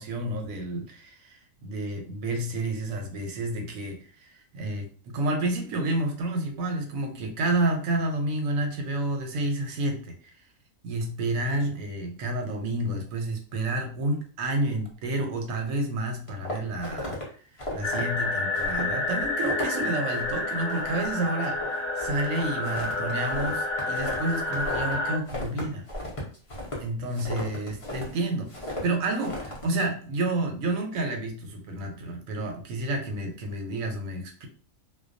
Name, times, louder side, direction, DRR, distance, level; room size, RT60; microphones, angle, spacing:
voice 1, 0.0-10.1 10.8-17.2 17.7-21.7 22.0-25.9 26.8-34.5, right 2 dB, 85° right, 4 dB, 1.0 m, -30 dB
sound 1, 16.3-17.2 17.6-18.0 18.5-18.9 19.2-19.8 20.1-20.4 20.7-21.1 21.4-24.9 25.3-28.1 28.5-28.8 29.2-29.6, left 1 dB, 35° left, 0.5 m, -35 dB
sound 2, 17.8-25.2, left 2 dB, 70° left, 0.9 m, -29 dB
2.2 x 2.2 x 2.5 m, 0.43 s
omnidirectional pair, 1.4 m